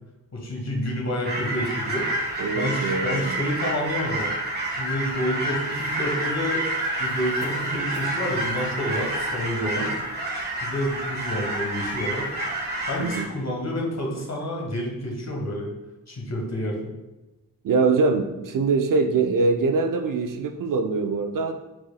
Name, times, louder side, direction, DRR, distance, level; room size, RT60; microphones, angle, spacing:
voice 1, 0.3-2.1 2.5-4.3 4.7-6.6 7.0-9.9 10.6-12.3 12.8-15.7 16.1-16.9, equal, 40° left, 0 dB, 1.5 m, -29 dB
sound 1, 1.2-13.2, right 1 dB, 25° right, 1.4 m, -29 dB
voice 2, 2.4-3.4 9.6-9.9 13.0-13.3 17.6-21.6, right 4 dB, 55° right, 6 dB, 0.5 m, -23 dB
4.5 x 4.3 x 2.3 m, 1.0 s
supercardioid pair, 50°, 39 cm